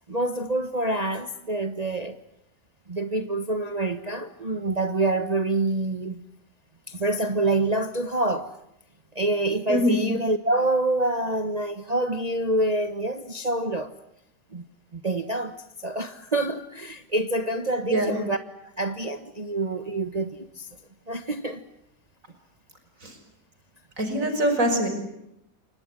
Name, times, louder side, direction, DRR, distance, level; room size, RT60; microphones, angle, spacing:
voice 1, 0.1-2.2 2.9-6.2 6.9-8.5 9.1-13.9 14.5-14.6 14.9-18.4 18.8-20.7 21.1-21.6, right 2 dB, 25° right, 1.3 m, -26 dB
voice 2, 9.7-10.0 17.9-18.1 23.0-23.2 24.0-24.9, equal, 50° right, 5.9 m, -23 dB
29.0 x 24.5 x 7.6 m
omnidirectional pair, 1.8 m